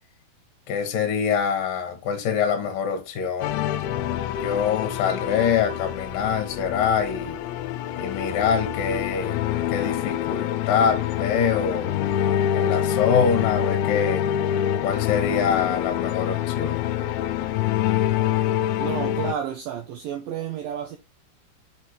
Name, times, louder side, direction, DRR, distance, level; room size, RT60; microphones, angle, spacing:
voice 1, 0.7-3.7 4.3-7.4 8.0-9.4 9.7-12.0 12.5-14.3 14.8-16.9, left 7 dB, 65° left, 2.3 m, -25 dB
sound 1, 3.4-19.3, left 11 dB, 90° left, 3.0 m, -26 dB
voice 2, 18.8-21.0, right 9 dB, 85° right, 2.0 m, -31 dB
6.3 x 5.7 x 3.3 m
omnidirectional pair, 5.3 m